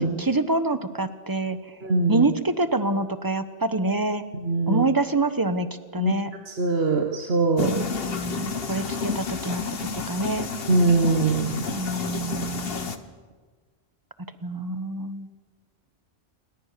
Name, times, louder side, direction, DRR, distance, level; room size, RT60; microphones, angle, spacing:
voice 1, 0.3-1.6 2.1-4.2 4.7-5.7 5.9-6.3 7.6-10.5 11.7-12.9 14.4-15.3, right 2 dB, 20° right, 11 dB, 1.2 m, -26 dB
voice 2, 1.8-2.3 4.3-4.8 6.0-6.1 6.5-7.7 10.7-11.6, right 3 dB, 70° right, 3 dB, 1.6 m, -22 dB
sound 1, 7.6-13.0, left 5 dB, 60° left, 1.5 m, -31 dB
28.5 x 21.0 x 6.8 m, 1.5 s
omnidirectional pair, 1.1 m